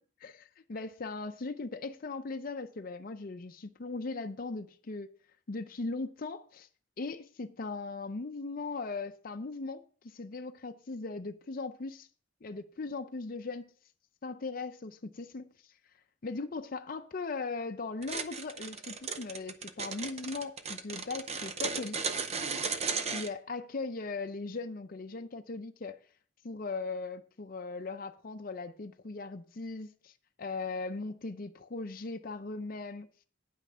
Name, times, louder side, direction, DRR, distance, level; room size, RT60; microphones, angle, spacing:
voice 1, 0.2-5.1 5.5-6.7 7.0-12.1 12.4-13.7 14.2-15.5 16.2-22.1 23.1-26.0 26.4-30.1 30.4-33.1, left 3 dB, 45° left, 0.5 m, -39 dB
sound 1, 18.0-23.3, right 5 dB, 35° right, 0.6 m, -35 dB
9.3 x 5.7 x 6.1 m
head